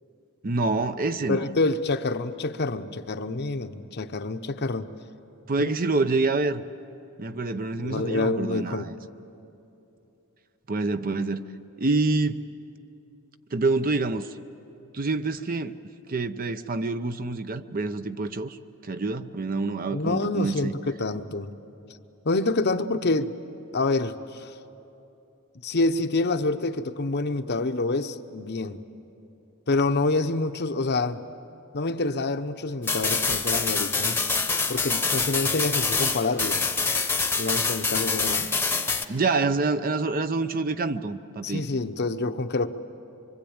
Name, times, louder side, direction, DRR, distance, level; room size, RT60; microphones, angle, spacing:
voice 1, 0.4-1.5 5.5-6.6 7.2-8.9 10.7-12.5 13.5-14.3 14.9-15.8 16.1-18.6 18.8-20.7 39.1-41.6, right 3 dB, 40° right, 11 dB, 0.7 m, -27 dB
voice 2, 1.3-4.9 7.8-8.9 19.9-21.5 22.2-23.4 23.7-24.5 25.6-28.8 29.7-31.2 31.7-34.2 34.7-36.6 37.4-38.5 41.4-42.7, left 3 dB, 50° left, 9 dB, 0.8 m, -27 dB
sound 1, 32.8-39.0, left 4 dB, 10° left, 1.0 m, -25 dB
25.0 x 24.0 x 8.7 m, 2.9 s
head